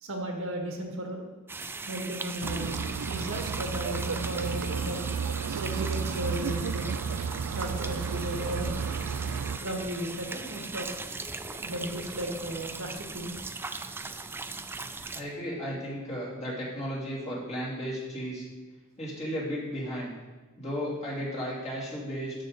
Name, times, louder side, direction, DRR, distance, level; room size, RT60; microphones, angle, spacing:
voice 1, 0.0-1.2 1.9-5.0 5.6-6.9 7.5-8.7 9.6-10.9 11.5-13.4, equal, 65° right, 2 dB, 1.5 m, -35 dB
sound 1, 1.5-15.2, right 3 dB, 10° right, 0.3 m, -39 dB
sound 2, 2.4-9.6, right 6 dB, 85° right, 0.4 m, -32 dB
voice 2, 15.1-18.5 19.0-20.1 20.6-22.3, equal, 30° left, -6 dB, 2.9 m, -34 dB
13.5 x 5.2 x 4.0 m, 1.2 s
head